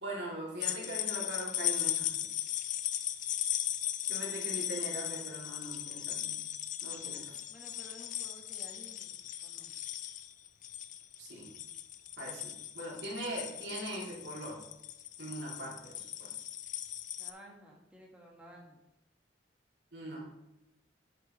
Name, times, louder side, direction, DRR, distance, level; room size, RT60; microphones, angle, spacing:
voice 1, 0.0-2.2 4.1-6.3 6.8-7.4 11.2-11.5 12.2-14.6 15.2-16.3 19.9-20.3, right 1 dB, 80° right, -4 dB, 3.0 m, -41 dB
sound 1, 0.6-17.3, left 12 dB, 45° left, 0.4 m, -37 dB
voice 2, 7.5-9.1 9.4-9.7 17.2-18.8, equal, 5° right, -2 dB, 1.5 m, -54 dB
8.2 x 6.8 x 3.3 m, 0.90 s
head